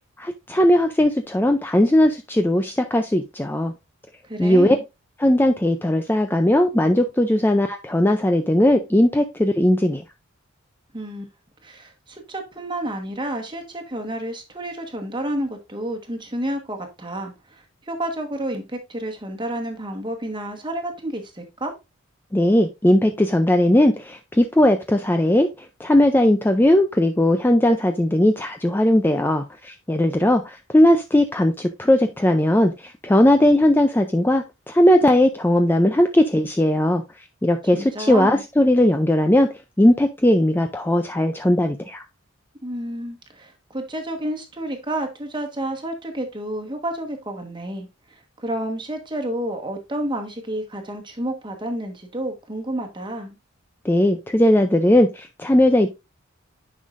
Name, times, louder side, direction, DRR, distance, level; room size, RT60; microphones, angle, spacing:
voice 1, 0.2-3.7 4.4-4.8 5.2-10.0 22.3-37.0 37.4-39.5 39.8-42.0 53.8-55.9, left 1 dB, 10° left, 6 dB, 0.4 m, -18 dB
voice 2, 4.2-4.8 10.9-11.2 11.6-21.7 37.4-38.4 42.6-53.4, right 1 dB, 20° right, 4 dB, 1.3 m, -30 dB
9.6 x 5.6 x 2.5 m, 0.24 s
head